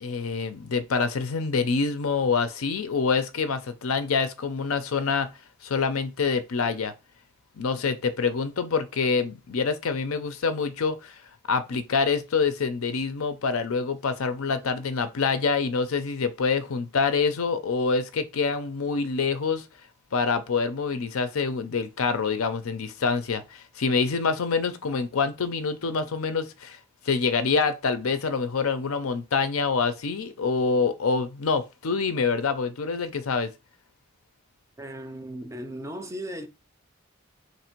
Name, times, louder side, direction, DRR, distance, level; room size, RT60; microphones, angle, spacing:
voice 1, 0.0-5.3 5.6-6.9 7.6-11.1 11.5-19.6 20.1-26.8 27.1-33.5, left 5 dB, 90° left, 0.5 m, -26 dB
voice 2, 34.8-36.5, right 1 dB, 15° right, 0.4 m, -36 dB
3.2 x 2.5 x 4.4 m
head